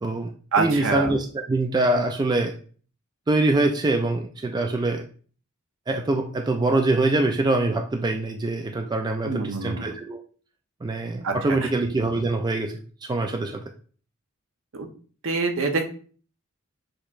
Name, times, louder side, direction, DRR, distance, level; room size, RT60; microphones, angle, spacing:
voice 1, 0.0-0.3 0.6-2.5 3.3-5.0 5.9-10.2 10.8-13.6, right 2 dB, 20° right, 4 dB, 0.3 m, -24 dB
voice 2, 0.5-1.1 9.2-9.8 11.2-11.3 11.6-11.7 14.7-14.9 15.2-15.9, right 4 dB, 65° right, 4 dB, 0.8 m, -25 dB
6.4 x 3.0 x 2.4 m, 0.41 s
head